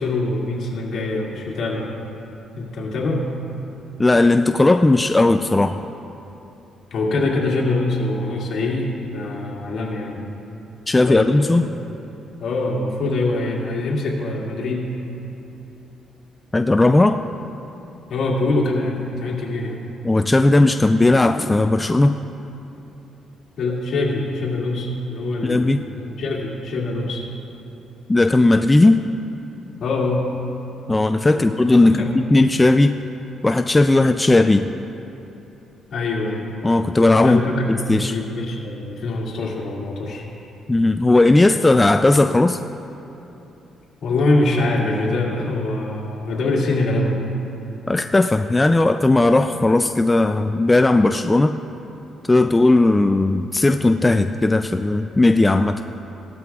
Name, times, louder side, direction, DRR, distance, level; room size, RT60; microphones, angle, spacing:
voice 1, 0.0-1.9 2.5-3.2 6.9-10.2 10.9-11.6 12.4-14.9 18.1-19.8 23.6-27.2 29.8-30.3 31.3-31.5 31.8-32.1 35.9-36.4 37.2-40.3 44.0-47.2, left 2 dB, 65° left, -3 dB, 2.2 m, -24 dB
voice 2, 4.0-5.8 10.9-11.6 16.5-17.2 20.0-22.1 25.4-25.8 28.1-29.0 30.9-33.0 33.4-34.7 36.6-38.1 40.7-42.6 47.9-51.5 52.3-55.8, left 2 dB, 15° left, 8 dB, 0.3 m, -16 dB
16.5 x 12.5 x 2.4 m, 3.0 s
cardioid pair, 90°, 0 cm